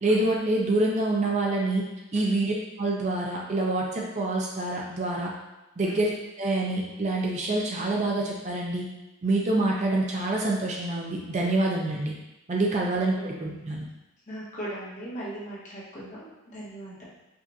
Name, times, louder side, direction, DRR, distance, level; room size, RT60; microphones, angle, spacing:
voice 1, 0.0-1.9 2.1-5.3 5.8-6.1 6.4-8.8 9.2-12.1 12.5-13.8, right 2 dB, 35° right, -2 dB, 0.4 m, -26 dB
voice 2, 14.3-17.0, right 1 dB, 35° left, -8 dB, 1.1 m, -38 dB
4.9 x 2.5 x 2.6 m, 0.97 s
head